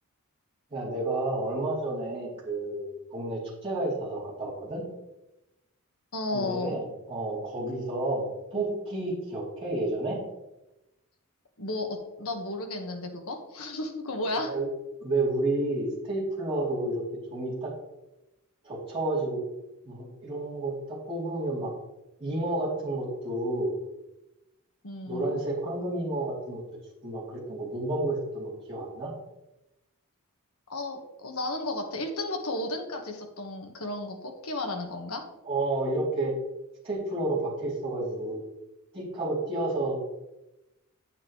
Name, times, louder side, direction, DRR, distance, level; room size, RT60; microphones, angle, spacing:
voice 1, 0.7-4.8 6.3-10.2 14.4-14.7 15.0-17.0 17.3-17.7 18.6-19.4 19.8-21.7 22.2-23.7 25.0-26.6 27.0-29.1 35.4-36.3 36.8-38.4 38.9-40.1, right 2 dB, 25° right, -8 dB, 3.1 m, -30 dB
voice 2, 6.1-6.8 11.6-14.5 24.8-25.3 30.7-35.2, left 2 dB, 75° left, 3 dB, 1.5 m, -33 dB
8.9 x 8.7 x 3.1 m, 0.94 s
head